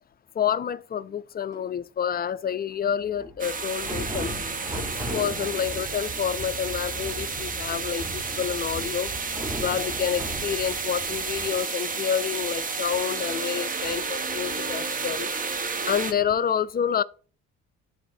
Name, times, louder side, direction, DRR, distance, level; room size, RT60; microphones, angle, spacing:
voice 1, 0.3-4.3 4.7-9.1 9.6-15.3 15.9-17.0, left 8 dB, 30° left, 0.4 m, -28 dB
sound 1, 1.5-1.7 3.0-11.6 11.9-12.0 12.2-15.5 16.0-16.3, right 1 dB, 10° right, 1.4 m, -38 dB
sound 2, 3.4-16.1, right 4 dB, 25° right, 0.7 m, -31 dB
9.9 x 4.1 x 2.6 m
cardioid pair, 90°, 30 cm